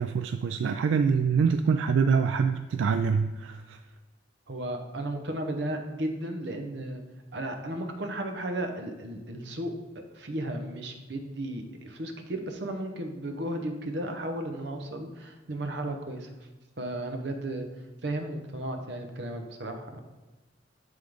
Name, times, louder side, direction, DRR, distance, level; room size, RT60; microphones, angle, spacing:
voice 1, 0.0-3.8, right 5 dB, 85° right, 8 dB, 0.3 m, -25 dB
voice 2, 4.5-7.0 7.3-16.3 16.8-17.7 18.0-20.0, right 1 dB, 65° right, 5 dB, 0.9 m, -34 dB
11.0 x 3.7 x 3.5 m, 1.1 s
head